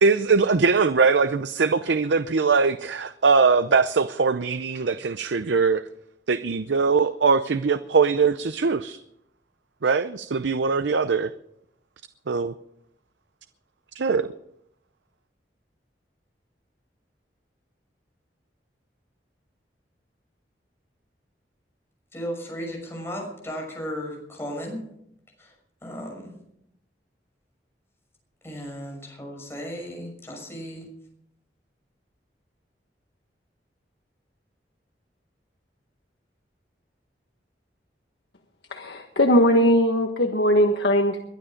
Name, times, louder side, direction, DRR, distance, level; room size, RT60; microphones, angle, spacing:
voice 1, 0.0-5.8 6.3-9.0 9.8-11.3 12.3-12.5 14.0-14.3, right 4 dB, 90° right, 0.6 m, -21 dB
voice 2, 22.1-24.8 25.8-26.3 28.4-30.9, equal, 15° left, 6.3 m, -35 dB
voice 3, 38.7-41.2, equal, 75° left, 1.4 m, -20 dB
22.0 x 11.5 x 5.1 m
head